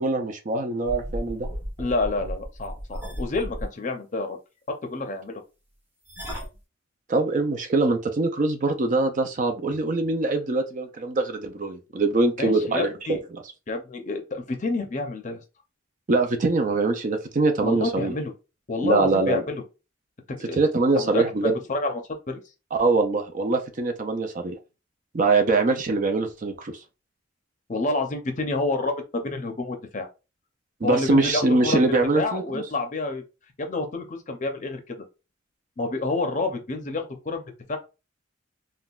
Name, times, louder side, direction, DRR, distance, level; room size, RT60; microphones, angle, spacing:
voice 1, 0.0-1.5 7.1-13.2 16.1-18.1 18.8-19.4 20.6-21.5 22.7-24.6 25.1-26.7 30.8-32.6, right 3 dB, 40° right, 0.4 m, -23 dB
sound 1, 0.8-3.7 6.1-6.6, equal, 10° right, 0.8 m, -34 dB
voice 2, 1.8-4.4 4.8-5.4 12.4-13.2 13.7-15.4 17.6-18.3 18.7-19.6 20.3-20.6 21.0-22.4 27.7-30.1 30.8-31.9 32.1-33.2 33.6-35.0 35.8-37.8, left 2 dB, 40° left, 0.6 m, -29 dB
3.6 x 2.2 x 2.3 m
head